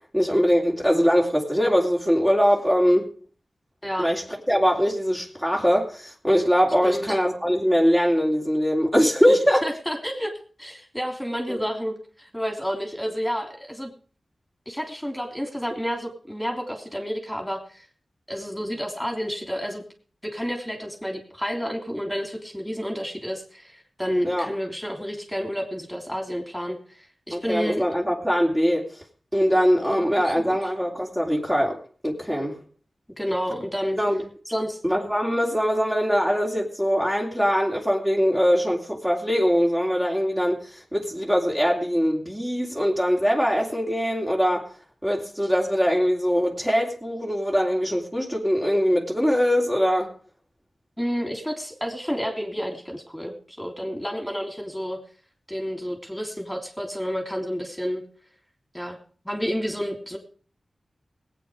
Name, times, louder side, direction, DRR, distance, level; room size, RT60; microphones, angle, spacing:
voice 1, 0.1-3.1 4.0-9.7 11.5-11.6 24.2-24.5 27.3-28.9 29.3-31.8 32.0-32.6 34.0-34.3 34.8-44.7 45.0-50.1, equal, 15° right, -2 dB, 3.0 m, -22 dB
voice 2, 6.8-7.2 9.3-10.3 10.6-13.9 14.6-17.9 18.3-19.8 20.2-27.8 29.9-30.6 33.2-34.0 34.5-34.8 51.0-55.0 55.5-58.0 58.7-59.0 59.2-60.2, equal, 5° left, 3 dB, 3.3 m, -30 dB
18.5 x 8.9 x 5.1 m, 0.43 s
cardioid pair, 50°, 0 cm